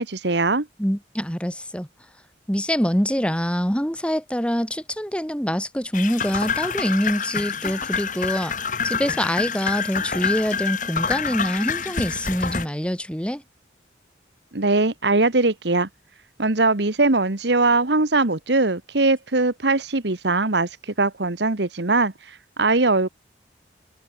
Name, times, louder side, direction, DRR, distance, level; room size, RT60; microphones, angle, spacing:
voice 1, 0.0-0.7 14.5-15.9 16.4-23.1, right 3 dB, 70° right, 1.5 m, -21 dB
voice 2, 0.8-1.9 2.5-8.5 8.8-13.4, equal, 5° left, 7.3 m, -25 dB
sound 1, 5.9-12.7, left 6 dB, 45° left, 5.0 m, -27 dB
open air
head